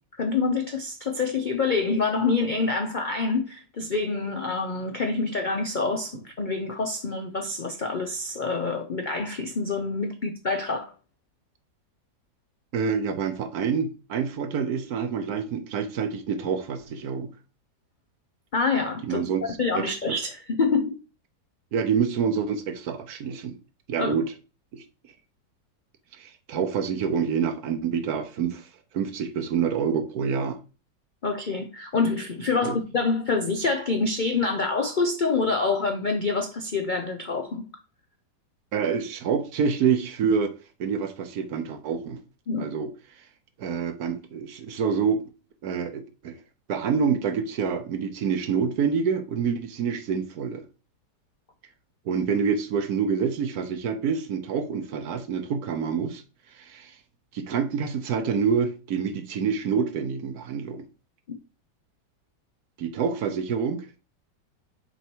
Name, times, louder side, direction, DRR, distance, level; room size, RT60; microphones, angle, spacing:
voice 1, 0.2-10.9 18.5-19.2 19.6-21.0 24.0-24.1 31.2-37.7 42.5-42.7 61.3-61.4, left 4 dB, 75° left, 0.4 m, -26 dB
voice 2, 12.7-17.3 19.0-20.2 21.7-23.6 23.9-24.3 24.7-24.8 26.2-28.7 28.9-30.6 32.6-32.8 38.7-40.5 40.8-42.2 42.6-42.9 43.6-45.2 45.6-46.4 46.7-50.6 52.0-56.2 56.5-56.9 57.3-60.8 62.8-64.0, right 6 dB, 65° right, 1.2 m, -27 dB
6.9 x 4.5 x 4.5 m
omnidirectional pair, 1.9 m